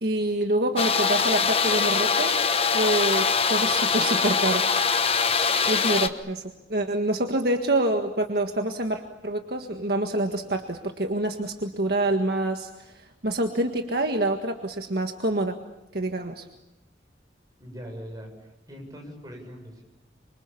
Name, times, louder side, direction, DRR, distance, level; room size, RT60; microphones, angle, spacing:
voice 1, 0.0-2.3 2.7-4.7 5.7-6.4 6.7-15.6 15.9-16.5, right 1 dB, 60° right, 4 dB, 1.7 m, -26 dB
sound 1, 0.8-6.1, left 5 dB, 35° left, 1.2 m, -23 dB
voice 2, 17.6-19.8, equal, 20° right, 1 dB, 7.8 m, -41 dB
26.5 x 26.0 x 7.1 m, 0.95 s
head